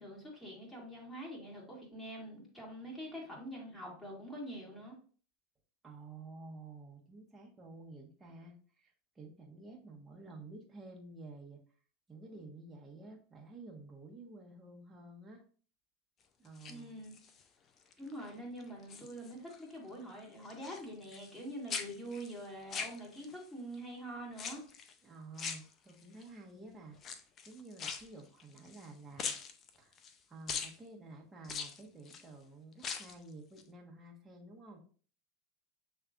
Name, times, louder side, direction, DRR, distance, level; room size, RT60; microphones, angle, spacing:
voice 1, 0.0-5.0 16.7-17.1 18.0-24.6, equal, 10° left, -3 dB, 2.3 m, -45 dB
voice 2, 5.8-11.6 12.1-15.4 16.4-17.0 25.0-29.3 29.7-30.0 30.3-34.8, right 2 dB, 15° right, -1 dB, 1.3 m, -51 dB
sound 1, 16.5-17.4 17.9-18.3 18.6-19.6 19.9-21.4 21.7-23.5 24.3-24.9 25.4-26.2 27.0-28.9 29.2-30.2 30.5-30.8 31.4-32.3 32.7-33.2 33.6-33.7, left 6 dB, 35° left, 0.5 m, -42 dB
6.4 x 3.3 x 2.5 m, 0.42 s
supercardioid pair, 110°, 0 cm